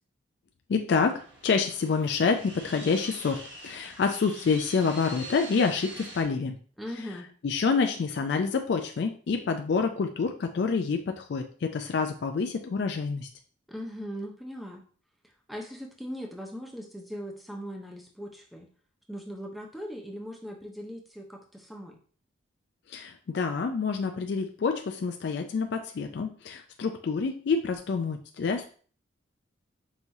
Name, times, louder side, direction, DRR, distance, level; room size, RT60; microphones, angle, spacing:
voice 1, 0.7-6.5 7.4-13.3 22.9-28.7, left 5 dB, 55° left, 5 dB, 0.3 m, -27 dB
sound 1, 1.1-6.2, right 1 dB, 60° right, 1.0 m, -44 dB
voice 2, 6.8-7.3 13.7-14.8 15.5-18.7 19.1-22.0, equal, ahead, 1 dB, 0.5 m, -39 dB
5.5 x 3.0 x 2.6 m, 0.43 s
head